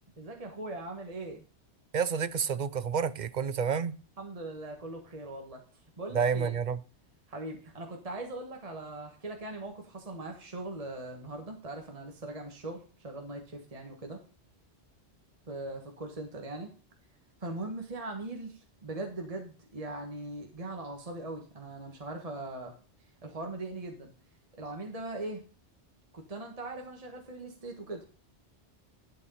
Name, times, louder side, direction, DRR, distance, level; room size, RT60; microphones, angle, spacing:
voice 1, 0.2-1.4 4.2-5.6 6.0-6.6 7.3-14.2 15.5-16.7 17.4-22.7 23.2-24.1 24.6-25.4 26.1-28.0, right 2 dB, 30° right, 1.5 m, -40 dB
voice 2, 1.9-3.9 6.1-6.8, right 6 dB, 50° right, 0.6 m, -29 dB
11.0 x 4.7 x 5.6 m
omnidirectional pair, 1.2 m